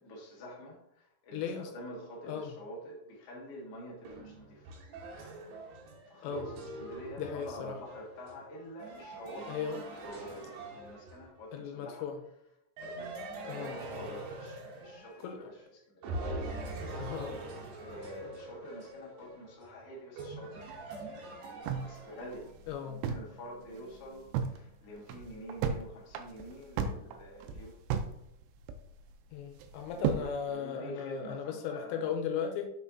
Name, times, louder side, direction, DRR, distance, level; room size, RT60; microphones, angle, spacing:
voice 1, 0.0-4.7 6.1-12.1 12.8-16.1 17.8-21.0 21.8-22.5 22.8-27.8 29.9-32.1, equal, 60° left, -4 dB, 1.6 m, -47 dB
voice 2, 1.3-1.7 2.3-2.6 6.2-6.5 7.2-7.8 9.5-9.8 11.5-12.2 13.5-13.8 15.2-15.5 17.0-17.4 22.7-23.0 29.3-32.7, left 7 dB, 85° left, 4 dB, 2.9 m, -37 dB
sound 1, 4.0-11.4 12.8-15.6 16.0-22.5, right 2 dB, 70° right, 3.1 m, -43 dB
sound 2, 21.7-23.4 23.7-23.8 24.1-24.6 25.0-25.8 26.1-28.2 28.4-29.1 29.6-30.3, right 7 dB, 90° right, 3.0 m, -33 dB
6.9 x 5.5 x 2.7 m, 0.78 s
omnidirectional pair, 5.3 m